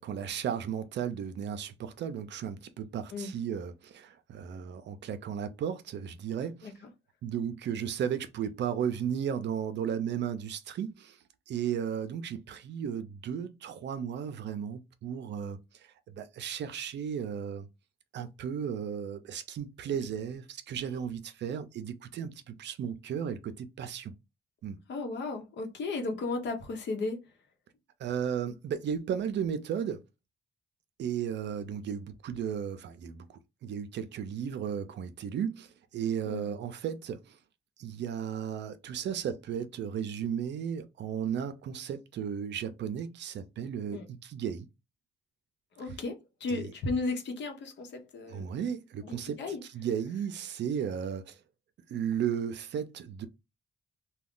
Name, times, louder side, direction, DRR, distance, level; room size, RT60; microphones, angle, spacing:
voice 1, 0.0-6.7 7.2-11.2 11.5-17.7 18.1-24.1 24.6-24.8 28.0-30.0 31.0-37.4 37.8-44.7 45.8-45.9 46.5-46.7 48.3-51.4 51.9-53.3, right 8 dB, 70° right, 0.5 m, -35 dB
voice 2, 24.9-27.2 36.3-36.5 43.9-44.0 45.8-46.1 46.4-48.4 49.0-49.6, left 3 dB, 70° left, 0.9 m, -34 dB
2.3 x 2.2 x 3.7 m
cardioid pair, 65°, 19 cm